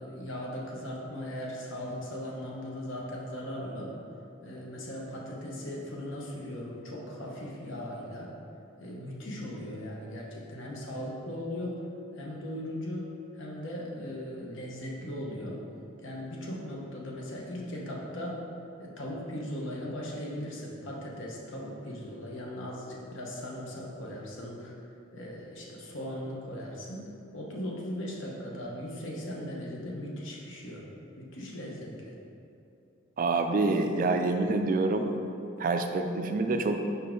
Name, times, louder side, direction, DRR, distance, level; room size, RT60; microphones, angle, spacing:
voice 1, 0.0-3.9 4.4-8.3 8.8-11.8 12.2-15.6 16.0-18.4 18.8-24.7 25.1-27.0 27.3-30.8 31.2-32.1, left 1 dB, 70° left, -3 dB, 1.0 m, -38 dB
voice 2, 33.2-35.1 35.6-36.8, right 3 dB, 40° right, 6 dB, 0.3 m, -27 dB
5.5 x 5.0 x 3.8 m, 2.7 s
head